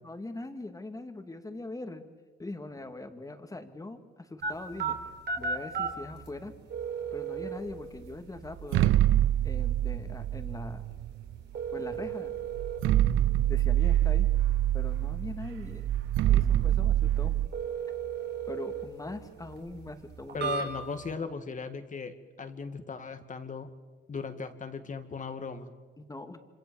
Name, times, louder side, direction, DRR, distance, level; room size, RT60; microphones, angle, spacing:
voice 1, 0.0-2.0 2.4-5.0 5.4-6.5 7.1-9.0 9.4-10.8 11.7-12.3 13.5-14.3 14.7-15.9 16.3-17.4 18.5-20.5 26.0-26.4, left 2 dB, 15° left, 7 dB, 2.5 m, -41 dB
sound 1, 4.4-21.1, right 6 dB, 60° right, 4.6 m, -38 dB
sound 2, 8.6-11.4 12.1-12.2 12.5-17.5, right 13 dB, 85° right, 0.8 m, -26 dB
voice 2, 20.3-23.7 24.1-25.7, left 4 dB, 40° left, 8 dB, 2.4 m, -37 dB
27.0 x 26.5 x 7.3 m, 1.4 s
cardioid pair, 90°, 20 cm